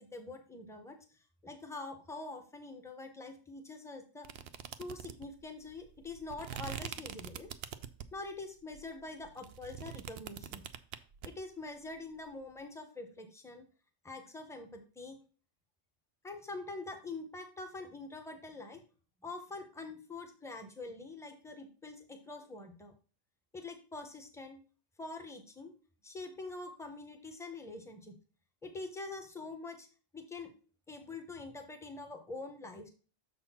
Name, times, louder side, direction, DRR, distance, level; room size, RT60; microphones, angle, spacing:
voice 1, 0.0-4.3 4.8-7.5 8.1-10.6 11.2-13.6 14.0-15.2 16.2-18.8 19.2-22.9 23.5-24.6 25.0-25.7 26.0-28.1 28.6-29.9 30.1-30.5 30.9-32.9, left 3 dB, 5° left, 5 dB, 1.0 m, -45 dB
sound 1, 4.2-8.3 8.7-11.3, right 9 dB, 60° right, 0.7 m, -44 dB
6.5 x 4.3 x 5.7 m, 0.37 s
omnidirectional pair, 1.3 m